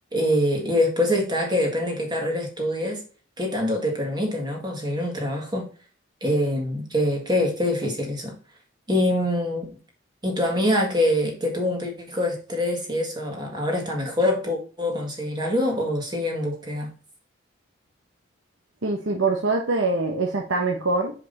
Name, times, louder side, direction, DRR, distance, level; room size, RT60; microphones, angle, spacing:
voice 1, 0.1-3.0 3.4-5.7 6.2-8.3 8.9-9.7 10.2-16.9, left 1 dB, 20° right, 1.8 m, -24 dB
voice 2, 18.8-21.1, right 3 dB, 80° right, 1.0 m, -24 dB
5.4 x 5.1 x 4.0 m
head